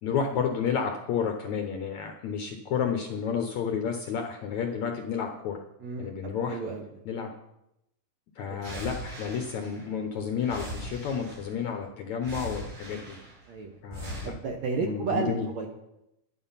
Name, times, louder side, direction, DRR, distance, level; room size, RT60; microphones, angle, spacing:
voice 1, 0.0-5.6 6.0-6.6 7.1-7.3 8.4-13.2 13.8-14.3 14.8-15.5, left 7 dB, 70° left, 4 dB, 1.8 m, -31 dB
voice 2, 5.8-6.2 6.5-6.8 8.5-8.9 13.5-13.8 14.2-15.7, right 4 dB, 65° right, 2 dB, 1.8 m, -32 dB
sound 1, 8.6-10.1 10.4-11.7 12.2-13.5 13.9-14.3, equal, 85° right, 5.4 m, -40 dB
11.5 x 11.0 x 5.7 m, 0.86 s
omnidirectional pair, 4.4 m